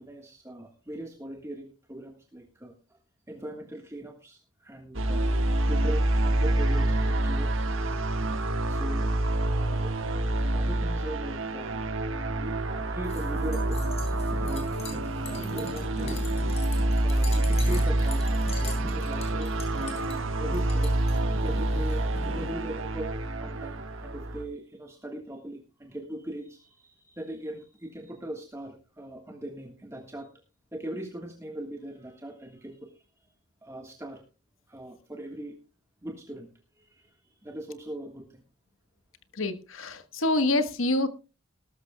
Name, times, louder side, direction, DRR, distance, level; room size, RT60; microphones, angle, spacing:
voice 1, 0.0-3.0 3.3-5.3 5.7-7.5 8.6-10.0 10.2-16.2 17.0-30.3 30.7-33.0 33.6-34.3 34.7-35.6 36.0-36.5 36.8-38.4, right 1 dB, 15° right, 1.5 m, -40 dB
sound 1, 4.9-24.4, right 1 dB, 80° right, 1.6 m, -27 dB
sound 2, 13.0-22.5, left 2 dB, 30° left, 3.9 m, -42 dB
voice 2, 39.4-41.1, left 2 dB, 85° left, 1.3 m, -26 dB
19.0 x 13.0 x 2.3 m
head